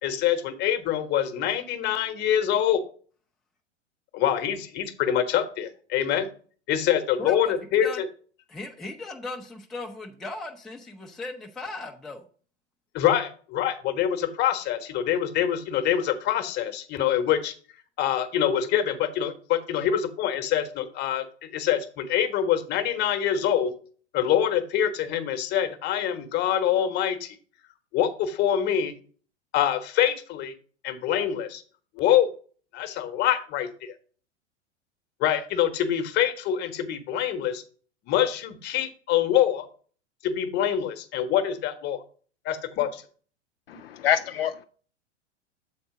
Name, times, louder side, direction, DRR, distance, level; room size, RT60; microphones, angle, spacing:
voice 1, 0.0-2.8 4.1-6.3 6.7-8.0 12.9-17.5 18.0-23.7 24.1-27.4 27.9-28.9 29.5-30.5 30.8-31.6 31.9-32.3 32.7-33.9 35.2-37.6 38.1-39.7 40.2-42.0 42.4-43.0, left 10 dB, 30° left, 9 dB, 1.0 m, -25 dB
voice 2, 7.2-7.6 7.8-8.0 8.5-12.3, left 2 dB, ahead, 0 dB, 0.5 m, -37 dB
voice 3, 43.7-44.7, left 10 dB, 55° left, 9 dB, 0.5 m, -26 dB
7.3 x 4.3 x 4.7 m, 0.42 s
figure-of-eight pair, 95°, 35 cm